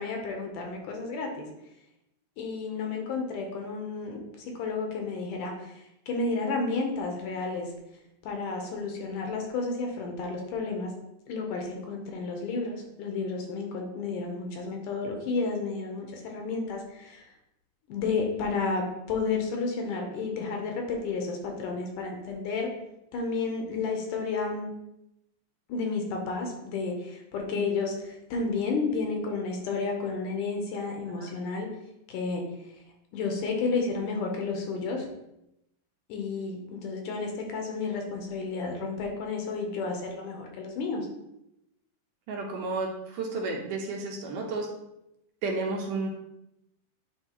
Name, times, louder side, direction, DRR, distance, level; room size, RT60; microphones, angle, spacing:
voice 1, 0.0-1.5 2.4-7.7 8.2-10.9 11.3-17.3 17.9-22.7 23.1-24.7 25.7-31.7 32.1-32.4 33.1-35.1 36.1-41.1, left 4 dB, 75° left, 2 dB, 2.2 m, -31 dB
voice 2, 42.3-44.7 45.4-46.1, right 3 dB, 75° right, 0 dB, 2.2 m, -32 dB
8.9 x 4.2 x 2.9 m, 0.85 s
omnidirectional pair, 4.0 m